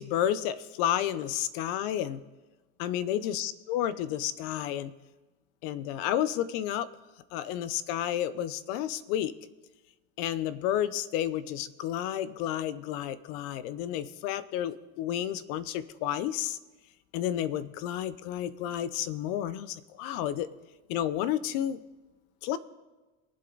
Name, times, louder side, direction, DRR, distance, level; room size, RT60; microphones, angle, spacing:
voice 1, 0.0-2.2 2.8-4.9 5.6-6.9 7.3-9.3 10.2-16.6 17.1-20.5 20.9-21.8 22.4-22.6, left 11 dB, 70° left, 16 dB, 0.8 m, -31 dB
23.0 x 7.8 x 4.0 m, 1.2 s
cardioid pair, 155°, 31 cm